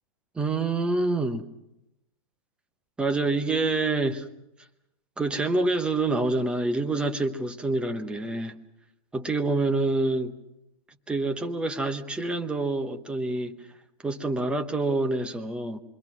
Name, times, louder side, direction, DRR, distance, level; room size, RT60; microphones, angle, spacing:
voice 1, 0.3-1.4 3.0-4.3 5.2-8.6 9.1-10.3 11.1-13.6 14.0-15.8, right 2 dB, 5° right, 7 dB, 1.0 m, -27 dB
27.5 x 22.0 x 6.1 m, 0.86 s
supercardioid pair, 160°, 17 cm